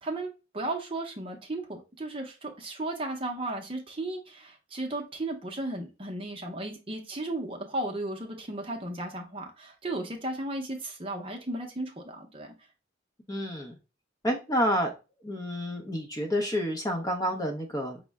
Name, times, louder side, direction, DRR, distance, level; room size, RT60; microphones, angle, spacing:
voice 1, 0.0-12.5, right 2 dB, 30° right, 0.7 m, -35 dB
voice 2, 13.3-13.7 14.2-14.9 15.2-18.0, equal, 20° left, 0.6 m, -29 dB
5.3 x 2.1 x 3.4 m
head